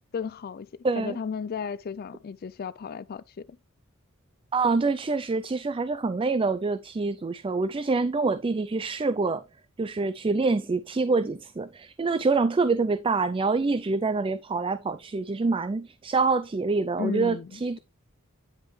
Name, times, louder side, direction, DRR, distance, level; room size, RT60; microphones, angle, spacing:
voice 1, 0.1-3.6 17.0-17.8, left 6 dB, 45° left, 0.4 m, -34 dB
voice 2, 0.8-1.2 4.5-9.4 9.8-17.8, right 3 dB, 25° right, 0.4 m, -26 dB
9.8 x 5.4 x 3.2 m
head